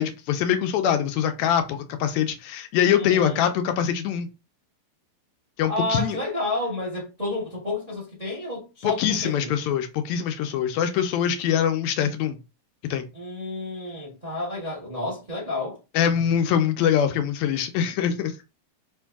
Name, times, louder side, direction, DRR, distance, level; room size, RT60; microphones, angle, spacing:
voice 1, 0.0-4.3 5.6-6.2 8.8-12.4 12.9-13.0 16.0-18.3, left 9 dB, 80° left, 1.7 m, -23 dB
voice 2, 3.0-3.4 5.7-9.5 13.1-15.8, left 2 dB, 35° right, 0.6 m, -30 dB
4.5 x 2.6 x 3.4 m
omnidirectional pair, 3.3 m